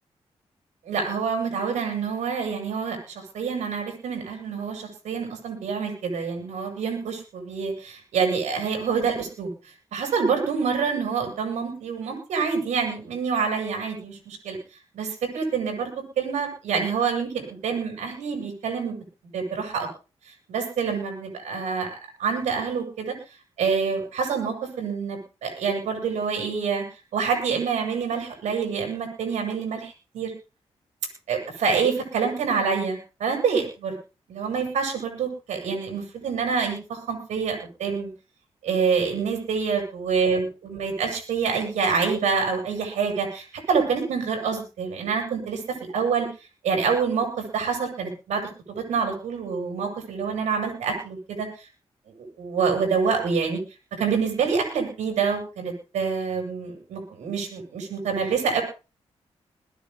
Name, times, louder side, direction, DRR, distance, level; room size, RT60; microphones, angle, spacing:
voice 1, 0.8-9.5 9.9-14.6 14.9-19.0 19.3-19.9 20.5-23.1 23.6-26.8 27.1-30.3 31.3-34.0 34.3-38.1 38.6-46.3 46.6-51.7 52.2-53.6 54.0-58.6, right 5 dB, 90° right, 2 dB, 7.3 m, -27 dB
22.5 x 10.0 x 3.9 m, 0.32 s
cardioid pair, 55°, 12 cm